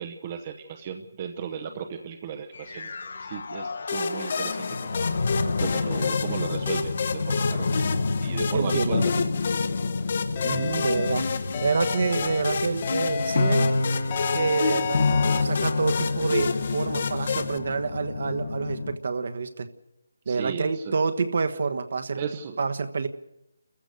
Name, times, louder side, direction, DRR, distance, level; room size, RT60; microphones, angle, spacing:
voice 1, 0.0-5.1 5.6-7.7 8.2-9.2 20.3-20.9 22.2-22.6, right 7 dB, 25° right, 6 dB, 0.9 m, -36 dB
sound 1, 2.5-19.0, left 3 dB, 60° left, 1.4 m, -28 dB
sound 2, 3.9-17.6, left 5 dB, 40° left, 1.1 m, -31 dB
voice 2, 8.5-9.0 10.4-11.3 11.6-13.7 14.3-15.0 15.3-19.7 20.3-22.2 22.6-23.1, right 4 dB, 50° right, 8 dB, 1.4 m, -27 dB
sound 3, 10.4-11.1 11.5-12.4 12.8-13.7 14.1-15.4, left 6 dB, 25° left, 1.5 m, -31 dB
29.5 x 15.0 x 6.6 m, 0.88 s
hypercardioid pair, 170°, 0 cm